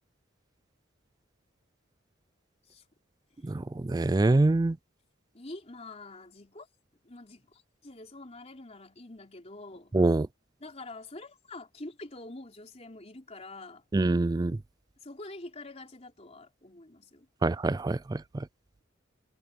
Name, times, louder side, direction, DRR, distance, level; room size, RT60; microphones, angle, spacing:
voice 1, 3.4-4.8 9.9-10.3 13.9-14.6 17.4-18.4, right 2 dB, 20° right, 0.3 m, -25 dB
voice 2, 5.3-6.7 7.0-10.0 10.6-13.8 15.0-17.3, left 2 dB, 30° left, 3.8 m, -46 dB
head